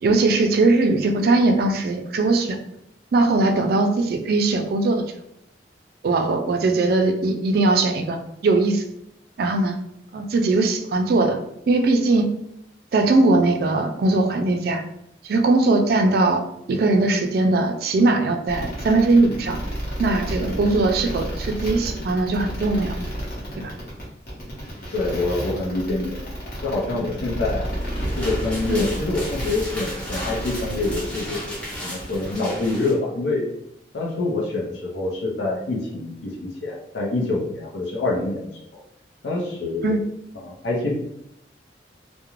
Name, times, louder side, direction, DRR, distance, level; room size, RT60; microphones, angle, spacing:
voice 1, 0.0-2.6 3.1-5.0 6.0-8.8 9.4-9.8 10.1-11.4 11.7-12.3 12.9-14.8 15.2-16.4 16.7-19.6 20.0-22.9 23.6-23.7 28.7-28.8 39.8-40.0, right 2 dB, 55° right, 5 dB, 0.3 m, -20 dB
sound 1, 18.5-32.3, equal, 55° left, 0.8 m, -31 dB
voice 2, 24.9-26.2 26.6-27.6 28.2-33.5 33.9-38.8 39.2-39.9 40.4-40.9, left 2 dB, 90° left, -3 dB, 0.6 m, -26 dB
sound 2, 27.6-33.0, equal, 5° left, 0.6 m, -35 dB
2.4 x 2.1 x 3.0 m, 0.78 s
head